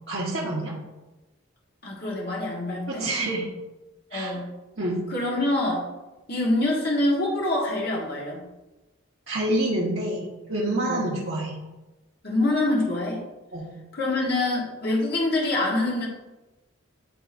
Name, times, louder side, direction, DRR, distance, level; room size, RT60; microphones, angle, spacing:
voice 1, 0.1-0.7 2.9-3.4 4.1-4.4 4.8-5.0 9.3-11.6 13.5-13.7, right 1 dB, 60° right, -7 dB, 1.4 m, -27 dB
voice 2, 1.8-3.1 4.1-4.5 5.1-5.9 6.3-8.5 10.8-11.0 12.2-13.3 13.9-16.1, left 2 dB, 50° left, -3 dB, 1.5 m, -25 dB
11.0 x 3.8 x 2.6 m, 1.1 s
head